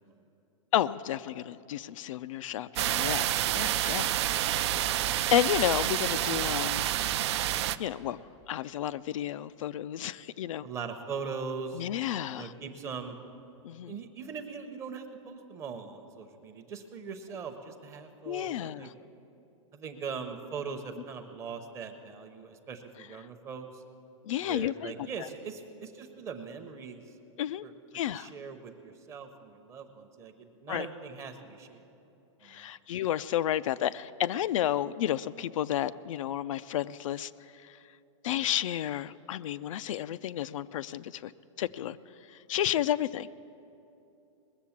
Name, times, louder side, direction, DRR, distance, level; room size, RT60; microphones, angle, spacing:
voice 1, 0.7-4.9 5.3-6.9 7.8-8.2 8.5-10.7 11.7-12.5 13.6-13.9 18.3-18.9 24.3-24.9 27.4-27.6 27.9-28.3 30.7-30.9 32.4-37.3 37.6-37.7 38.2-41.3 41.6-42.0 42.5-43.3, left 11 dB, 75° left, 14 dB, 0.4 m, -31 dB
sound 1, 2.8-7.8, right 12 dB, 55° right, 0.4 m, -28 dB
voice 2, 10.6-11.8 12.4-13.2 13.9-18.9 19.7-23.8 24.4-27.0 27.6-27.7 28.1-31.8 32.4-32.7, right 5 dB, 15° right, 6 dB, 0.8 m, -41 dB
20.5 x 7.4 x 7.2 m, 2.8 s
supercardioid pair, 165°, 17 cm